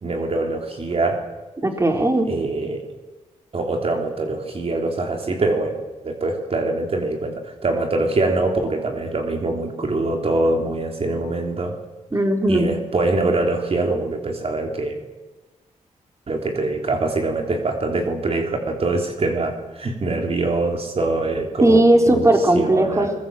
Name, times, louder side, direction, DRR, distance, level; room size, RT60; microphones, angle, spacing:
voice 1, 0.0-1.2 2.3-2.9 3.5-11.7 12.5-15.0 16.3-22.2 22.5-23.1, right 2 dB, 50° right, 3 dB, 3.5 m, -24 dB
voice 2, 1.6-2.3 12.1-12.7 21.6-23.1, right 1 dB, 20° right, 4 dB, 4.1 m, -17 dB
23.0 x 21.5 x 7.8 m, 1.1 s
wide cardioid pair, 100°, 13 cm